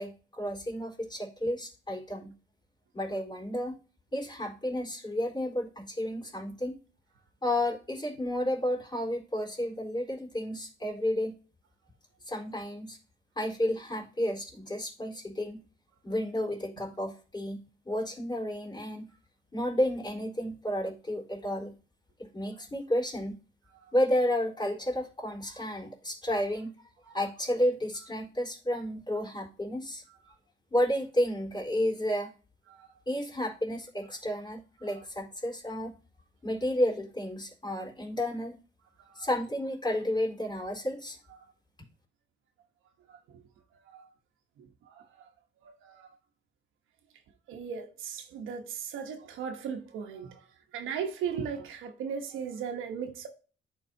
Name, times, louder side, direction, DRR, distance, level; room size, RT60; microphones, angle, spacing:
voice 1, 0.0-2.3 2.9-3.8 4.1-6.7 7.4-11.3 12.2-13.0 13.4-15.6 16.0-19.1 19.5-21.7 22.2-23.4 23.9-26.7 27.1-30.0 30.7-32.3 33.1-35.9 36.4-38.5 39.1-41.2, left 1 dB, 20° left, 3.9 m, -31 dB
voice 2, 47.5-50.4 50.7-53.3, right 7 dB, 90° right, 1.1 m, -36 dB
11.0 x 4.1 x 2.8 m
cardioid pair, 90°, 20 cm